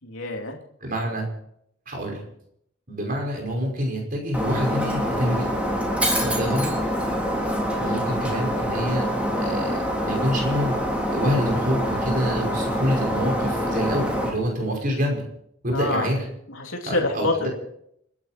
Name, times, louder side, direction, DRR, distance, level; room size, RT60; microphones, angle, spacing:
voice 1, 0.0-0.6 6.4-7.0 15.7-16.1 16.5-17.5, left 2 dB, 75° left, 1 dB, 3.1 m, -27 dB
voice 2, 0.8-1.3 1.9-2.2 2.9-5.5 6.2-6.7 7.8-9.1 9.4-10.7 11.1-15.2 15.6-16.2 16.9-17.3, equal, 40° right, 0 dB, 5.6 m, -26 dB
Shatter, 4.3-14.3, equal, 5° right, 3.5 m, -25 dB
30.0 x 11.0 x 4.5 m, 0.73 s
head